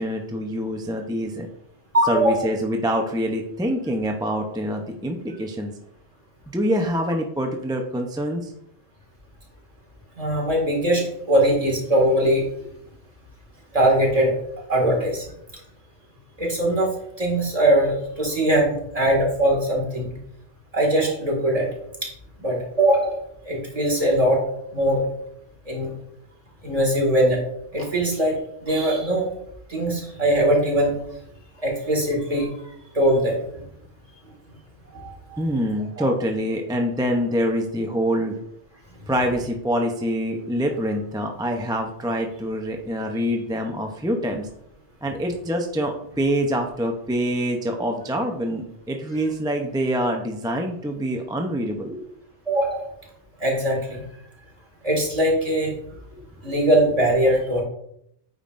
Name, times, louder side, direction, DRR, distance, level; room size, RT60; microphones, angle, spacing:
voice 1, 0.0-1.5 2.0-5.7 6.5-8.5 35.4-38.4 39.1-44.5 45.0-52.1 56.1-56.6, equal, 5° right, 2 dB, 0.4 m, -25 dB
voice 2, 1.9-2.4 10.2-12.4 13.7-14.3 14.7-15.2 16.4-16.9 17.2-20.1 20.7-21.7 22.0-22.1 22.4-23.1 23.4-24.4 24.7-25.0 25.7-25.9 26.6-27.4 27.7-28.3 28.6-29.2 29.7-30.9 31.6-32.5 32.9-33.4 34.9-35.4 36.0-36.1 52.5-52.9 53.4-54.0 54.8-55.7 56.4-57.6, right 1 dB, 30° right, -2 dB, 2.1 m, -21 dB
8.8 x 5.5 x 2.5 m, 0.73 s
omnidirectional pair, 1.2 m